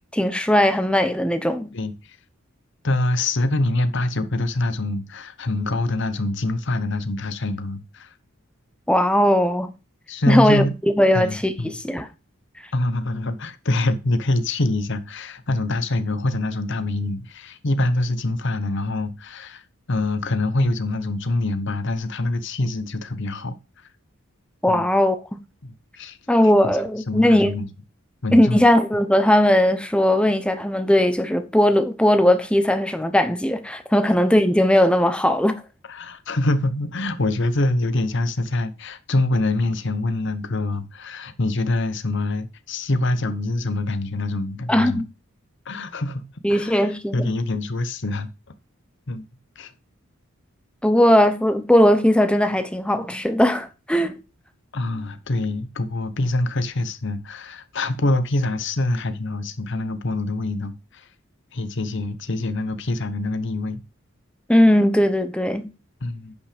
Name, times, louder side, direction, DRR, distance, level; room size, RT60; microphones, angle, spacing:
voice 1, 0.0-1.7 8.9-9.7 10.3-12.1 24.6-25.4 26.3-27.5 28.3-35.6 44.7-45.1 46.4-47.4 50.8-54.1 64.5-65.7, left 1 dB, 5° left, 0.9 m, -18 dB
voice 2, 1.7-2.2 2.8-8.1 10.1-10.7 11.1-11.8 12.7-19.6 19.9-23.6 24.7-24.9 25.6-26.2 26.6-26.8 27.1-27.7 28.2-28.6 34.0-34.1 35.9-45.0 45.7-46.2 46.5-48.3 49.1-49.3 49.6-49.7 54.7-61.1 61.5-63.8 66.0-66.4, left 2 dB, 55° left, 1.0 m, -25 dB
10.5 x 5.9 x 5.1 m
head